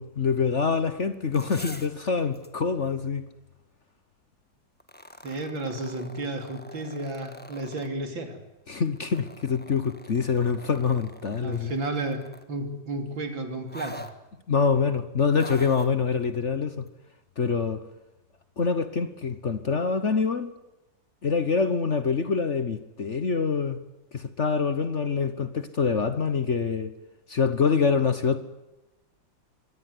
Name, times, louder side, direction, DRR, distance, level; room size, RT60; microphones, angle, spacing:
voice 1, 0.0-3.2 8.7-11.7 14.5-16.9 17.4-17.8 18.6-20.5 21.2-23.8 24.1-26.9 27.3-28.4, left 5 dB, 45° left, 1.3 m, -25 dB
sound 1, 1.1-2.0 2.3-2.5 4.8-7.9 8.8-12.5 13.7-14.1 15.3-15.9 16.9-17.0, left 1 dB, 5° left, 1.3 m, -45 dB
voice 2, 5.2-8.4 11.4-12.2 12.5-14.1, right 2 dB, 80° right, 3.9 m, -32 dB
24.5 x 18.0 x 9.6 m
omnidirectional pair, 2.1 m